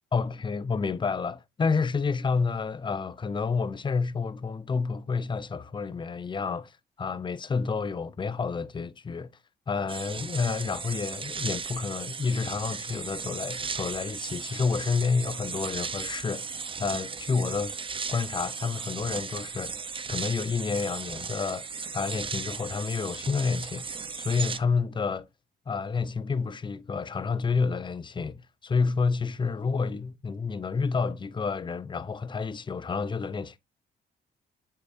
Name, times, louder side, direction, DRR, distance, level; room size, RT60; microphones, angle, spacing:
voice 1, 0.1-9.3 9.7-16.5 16.8-17.8 18.1-19.7 20.1-21.7 21.9-25.3 25.7-33.6, left 5 dB, 25° left, 0.5 m, -29 dB
sound 1, 9.9-24.6, right 5 dB, 25° right, 0.6 m, -36 dB
7.6 x 5.7 x 2.6 m
cardioid pair, 90°, 20 cm